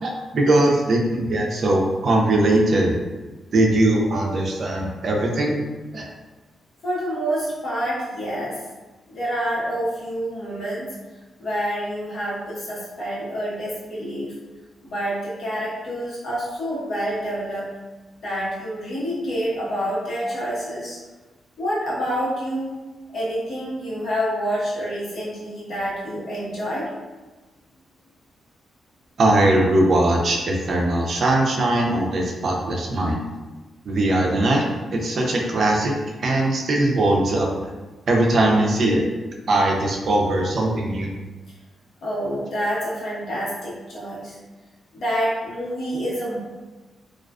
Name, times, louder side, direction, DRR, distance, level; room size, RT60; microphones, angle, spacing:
voice 1, 0.0-2.9 3.5-5.6 5.9-6.1 29.2-33.2 33.9-37.6 38.1-39.0 39.5-41.1, right 1 dB, 60° right, 0 dB, 0.4 m, -20 dB
voice 2, 6.8-8.6 9.1-10.9 11.4-14.3 14.8-17.7 18.2-21.0 21.6-22.7 23.1-26.9 42.0-44.3 44.9-46.4, equal, 60° left, -8 dB, 1.0 m, -27 dB
2.4 x 2.3 x 2.2 m, 1.2 s
cardioid pair, 95°, 0 cm